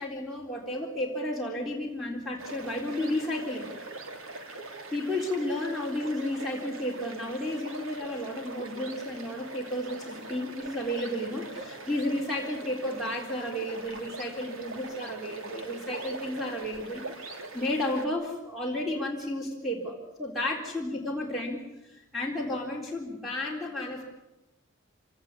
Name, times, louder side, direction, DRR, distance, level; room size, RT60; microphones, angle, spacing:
voice 1, 0.0-3.7 4.9-21.6 21.8-24.0, left 1 dB, ahead, -2 dB, 3.9 m, -32 dB
sound 1, 2.4-18.1, right 2 dB, 75° right, 2.9 m, -42 dB
26.0 x 18.5 x 9.7 m, 0.97 s
head